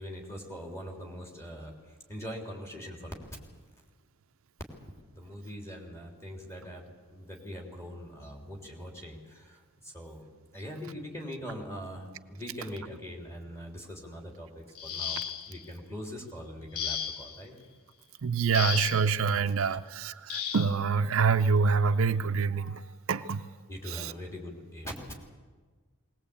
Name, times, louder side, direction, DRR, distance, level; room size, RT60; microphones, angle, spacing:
voice 1, 0.0-1.7 2.1-3.1 5.1-10.3 10.5-17.5 19.3-19.5 23.7-24.9, equal, 15° left, 0 dB, 3.3 m, -42 dB
sound 1, 14.7-15.6 16.7-17.4 18.5-19.1 20.3-20.8 22.0-22.1 22.6-22.8, left 7 dB, 85° left, 1.2 m, -35 dB
voice 2, 18.2-22.8 23.1-23.5 23.9-24.1, right 5 dB, 65° right, 10 dB, 0.5 m, -26 dB
20.0 x 19.0 x 8.5 m, 1.4 s
head